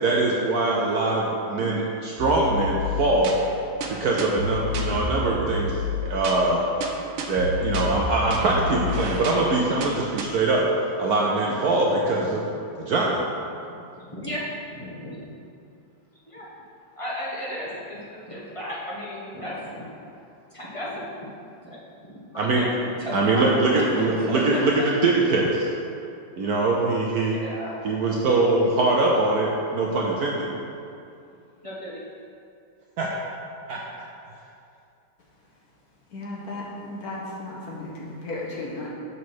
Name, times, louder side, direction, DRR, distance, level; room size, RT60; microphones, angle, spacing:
voice 1, 0.0-3.3 4.0-6.7 7.3-10.6 11.0-12.4 12.8-13.2 22.4-22.6 23.1-24.7 25.0-25.7 26.4-27.3 27.8-30.5 33.0-33.1 33.7-33.8, right 2 dB, 65° right, -2 dB, 1.0 m, -22 dB
sound 1, 2.2-10.2, left 2 dB, 85° right, 1.5 m, -30 dB
voice 2, 12.1-12.4 14.0-14.4 14.7-15.3 16.3-16.5 17.0-19.9 20.5-21.3 21.6-23.8 24.2-25.4 27.2-28.2 30.2-30.5 31.6-32.0, equal, 20° left, -7 dB, 1.0 m, -35 dB
voice 3, 36.1-38.9, left 2 dB, 55° left, -4 dB, 1.3 m, -35 dB
6.3 x 4.1 x 6.3 m, 2.5 s
omnidirectional pair, 2.1 m